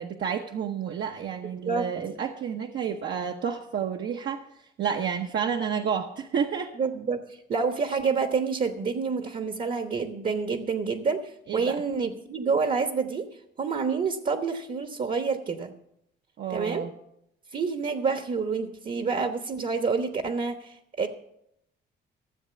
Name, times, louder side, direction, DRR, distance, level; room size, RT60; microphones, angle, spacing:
voice 1, 0.0-4.5 4.8-6.7 11.5-11.8 16.4-16.9, right 7 dB, 65° right, 2 dB, 1.0 m, -30 dB
voice 2, 6.8-7.2 7.5-13.3 13.6-15.7 16.5-16.8 17.5-21.1, right 5 dB, 45° right, 8 dB, 1.1 m, -28 dB
14.0 x 7.4 x 6.9 m, 0.78 s
cardioid pair, 90°, 20 cm